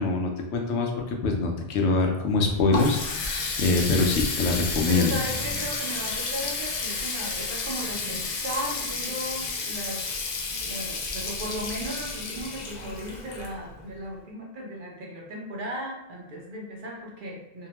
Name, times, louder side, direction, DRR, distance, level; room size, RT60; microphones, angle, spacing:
voice 1, 0.0-5.1, left 3 dB, 85° left, 1 dB, 0.9 m, -24 dB
Water tap faucet, 2.3-13.9, left 4 dB, 55° left, 0.5 m, -31 dB
voice 2, 4.9-10.0 10.6-17.7, equal, 60° right, -2 dB, 0.7 m, -36 dB
2.7 x 2.1 x 2.9 m, 0.90 s
omnidirectional pair, 1.1 m